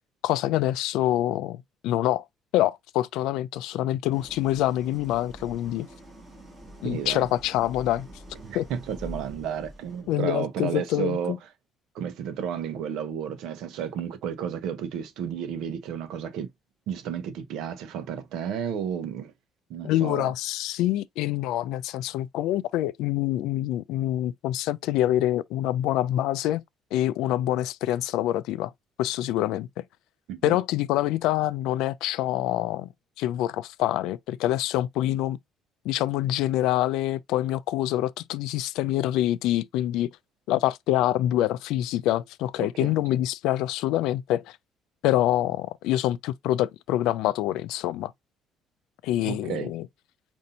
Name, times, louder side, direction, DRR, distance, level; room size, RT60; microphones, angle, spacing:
voice 1, 0.2-2.2 2.5-5.9 6.8-8.1 8.5-8.7 10.1-11.4 19.8-26.6 26.9-28.7 29.0-29.8 30.4-32.9 33.2-35.4 35.8-40.1 40.5-44.4 45.0-48.1 49.0-49.9, left 14 dB, 90° left, 0.3 m, -26 dB
Idling, 4.1-10.2, equal, 15° right, 1.5 m, -45 dB
voice 2, 6.8-7.3 8.4-11.4 11.9-16.5 16.9-19.3 19.7-20.3 30.3-30.6 42.6-43.0 49.2-49.7, right 8 dB, 70° right, 0.8 m, -32 dB
5.3 x 2.6 x 2.7 m
cardioid pair, 170°, 0 cm